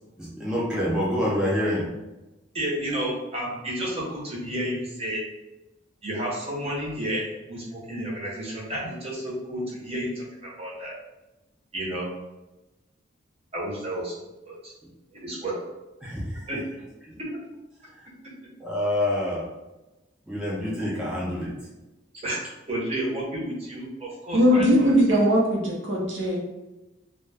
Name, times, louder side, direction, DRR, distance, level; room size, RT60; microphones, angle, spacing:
voice 1, 0.2-1.9 16.0-16.6 17.0-17.2 17.9-18.1 18.6-19.5 20.3-21.6, left 1 dB, 5° right, -7 dB, 0.4 m, -27 dB
voice 2, 2.5-5.2 6.0-10.9 11.7-12.1 13.5-14.1 14.5-14.7 15.1-15.5 16.5-16.8 17.2-17.4 22.2-22.4 22.7-24.9, right 1 dB, 30° right, -5 dB, 0.8 m, -31 dB
voice 3, 24.3-26.4, equal, 65° right, -3 dB, 0.7 m, -20 dB
2.1 x 2.1 x 3.3 m, 1.0 s
head